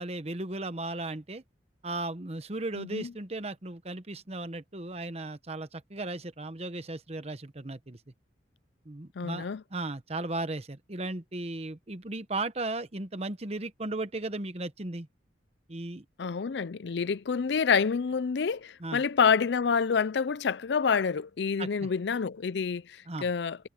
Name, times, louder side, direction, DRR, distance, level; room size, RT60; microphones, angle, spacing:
voice 1, 0.0-1.4 1.8-8.0 8.8-15.1 15.7-16.0 18.8-19.0 21.6-21.9 23.1-23.3, right 2 dB, 35° right, 1.0 m, -36 dB
voice 2, 2.8-3.1 9.2-9.6 16.2-23.7, left 6 dB, 70° left, 0.5 m, -28 dB
head